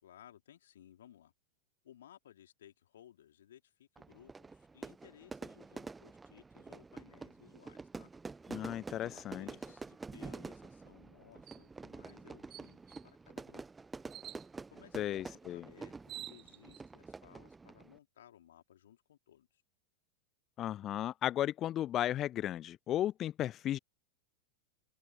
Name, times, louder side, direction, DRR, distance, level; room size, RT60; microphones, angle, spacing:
voice 1, 0.0-1.3 1.8-8.1 9.0-13.6 14.7-19.6, left 11 dB, 60° left, 3.5 m, -60 dB
Fire / Fireworks, 4.0-18.0, right 4 dB, 10° right, 0.9 m, -48 dB
voice 2, 8.5-9.5 14.9-15.6 20.6-23.8, left 12 dB, 30° left, 0.4 m, -35 dB
sound 1, 11.5-11.7 12.1-12.2 12.5-13.1 14.1-14.5 15.6-15.7 15.9-16.8, right 13 dB, 30° right, 0.3 m, -48 dB
figure-of-eight pair, 90°, 0 cm